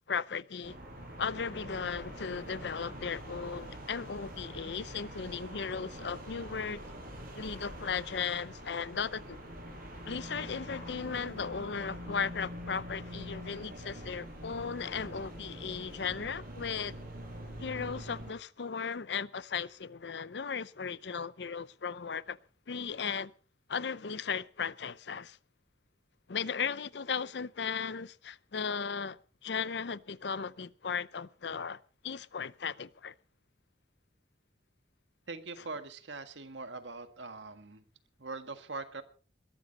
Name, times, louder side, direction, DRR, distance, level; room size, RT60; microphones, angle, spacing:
voice 1, 0.1-0.8 1.2-6.8 7.3-9.4 10.1-16.9 17.6-22.4 22.7-23.3 23.7-25.4 26.3-33.1, left 6 dB, 70° left, 0.6 m, -36 dB
sound 1, 0.6-18.3, equal, 50° right, 7.9 m, -45 dB
voice 2, 35.3-37.8 38.2-39.0, right 3 dB, 85° right, 1.8 m, -42 dB
21.5 x 12.5 x 4.1 m
head